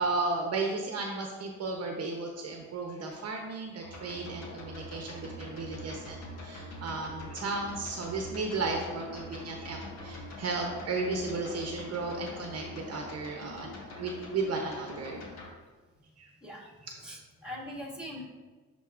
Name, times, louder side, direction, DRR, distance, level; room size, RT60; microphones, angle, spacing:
voice 1, 0.0-15.2 16.2-16.3 16.8-16.9, right 3 dB, 55° right, 1 dB, 0.9 m, -34 dB
sound 1, 3.8-15.5, left 1 dB, 60° left, 1.6 m, -44 dB
voice 2, 17.0-18.3, left 1 dB, 5° right, -3 dB, 1.9 m, -41 dB
10.5 x 3.9 x 2.5 m, 1.4 s
cardioid pair, 90°, 30 cm